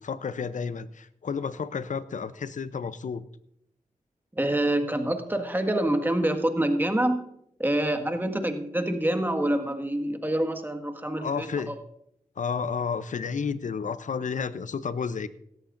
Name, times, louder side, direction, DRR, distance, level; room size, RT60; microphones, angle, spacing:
voice 1, 0.0-3.2 11.2-11.7 12.4-15.3, left 6 dB, 65° left, 14 dB, 0.6 m, -31 dB
voice 2, 4.3-7.2 7.6-11.7, right 1 dB, 15° right, 6 dB, 1.7 m, -26 dB
17.0 x 13.0 x 2.6 m, 0.75 s
cardioid pair, 45°, 14 cm